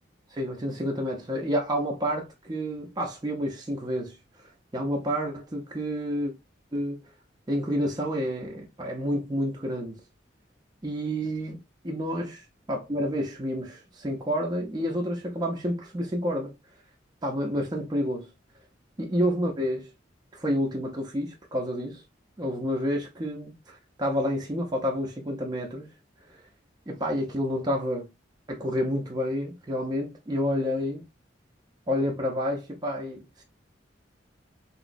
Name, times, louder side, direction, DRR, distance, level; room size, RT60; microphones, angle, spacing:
voice 1, 0.3-4.2 4.7-6.3 6.7-7.0 7.5-10.0 10.8-11.6 11.8-16.5 17.2-18.3 19.0-19.9 20.3-22.0 22.4-25.9 26.3-26.4 26.9-28.1 28.5-31.0 31.9-33.4, equal, 25° right, 0.6 m, -29 dB
3.1 x 2.9 x 2.5 m
head